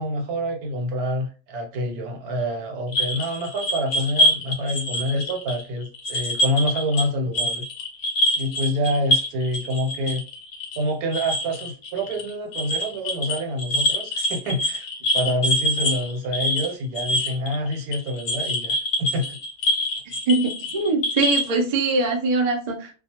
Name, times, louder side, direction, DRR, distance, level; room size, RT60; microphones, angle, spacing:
voice 1, 0.0-7.6 8.4-10.3 10.8-14.9 15.1-19.4, equal, 85° right, 1.2 m, -27 dB
sound 1, 2.9-7.1 7.3-21.6, equal, 65° left, 0.9 m, -25 dB
voice 2, 20.3-22.9, right 3 dB, 65° right, 0.4 m, -22 dB
2.3 x 2.3 x 2.8 m
omnidirectional pair, 1.5 m